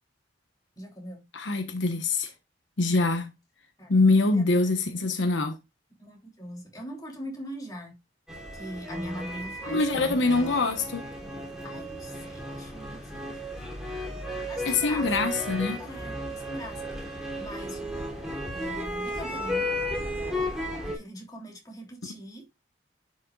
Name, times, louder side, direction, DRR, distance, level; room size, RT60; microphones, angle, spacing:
voice 1, 0.8-1.3 3.8-3.9 4.4-4.7 6.0-8.0 8.5-10.2 11.6-13.4 14.5-15.3 15.8-19.7 20.8-22.4, equal, 20° left, 3.2 m, -42 dB
voice 2, 1.3-2.3 2.8-3.3 3.9-5.5 9.7-11.0 14.6-15.8, left 3 dB, 80° left, 1.1 m, -24 dB
sound 1, 8.3-21.0, equal, 5° right, 3.2 m, -34 dB
11.0 x 6.3 x 2.4 m
head